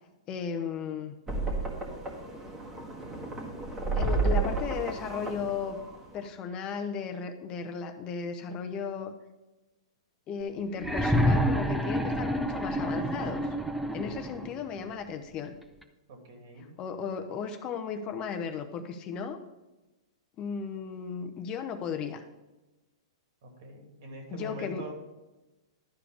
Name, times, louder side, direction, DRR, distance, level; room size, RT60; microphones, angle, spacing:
voice 1, 0.3-1.1 3.9-5.8 6.1-9.1 10.3-13.5 13.9-15.5 16.8-19.4 20.4-22.2 24.3-24.9, left 6 dB, 30° left, 6 dB, 0.8 m, -35 dB
sound 1, 1.3-6.3, right 3 dB, 15° right, 1.7 m, -32 dB
sound 2, 10.8-14.6 15.8-15.9, equal, ahead, 0.6 m, -28 dB
voice 2, 16.1-16.7 23.4-24.9, right 1 dB, 60° right, 3 dB, 2.6 m, -44 dB
11.5 x 5.0 x 4.9 m, 1.1 s
hypercardioid pair, 135°, 3 cm